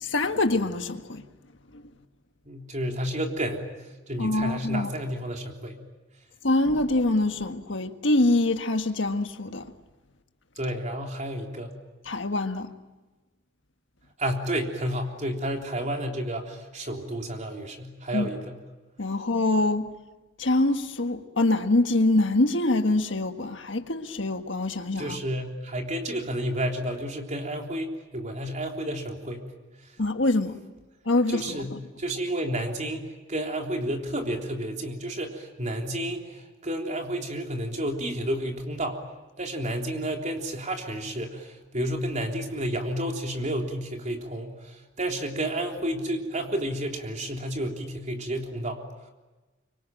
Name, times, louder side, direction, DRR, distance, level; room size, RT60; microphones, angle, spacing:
voice 1, 0.0-1.3 1.7-1.8 4.2-4.9 6.4-9.7 12.1-12.7 18.1-18.3 19.0-19.9 20.4-25.2 30.0-30.6 31.0-31.8, left 2 dB, 70° left, 1.6 m, -25 dB
voice 2, 2.5-3.6 4.1-5.8 10.6-11.8 14.2-18.6 25.0-29.5 31.3-39.0 39.4-48.8, right 1 dB, 40° right, 3.6 m, -31 dB
25.5 x 24.5 x 9.1 m
head